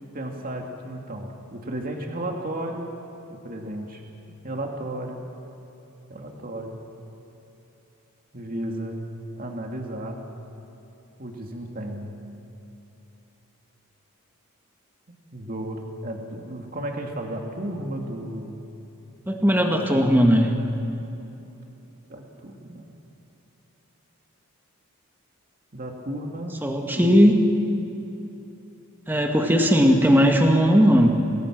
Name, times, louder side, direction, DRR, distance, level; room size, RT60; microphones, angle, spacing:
voice 1, 0.1-2.9 3.3-4.0 4.4-5.2 6.1-6.8 8.3-9.0 9.4-10.2 11.2-12.1 15.3-18.6 19.6-20.0 22.1-22.9 25.7-26.6 26.8-27.2, right 1 dB, 40° right, 2 dB, 2.3 m, -33 dB
voice 2, 19.3-20.5 26.6-27.4 29.1-31.1, equal, 10° right, 2 dB, 1.9 m, -18 dB
27.0 x 19.5 x 6.1 m, 3.0 s
head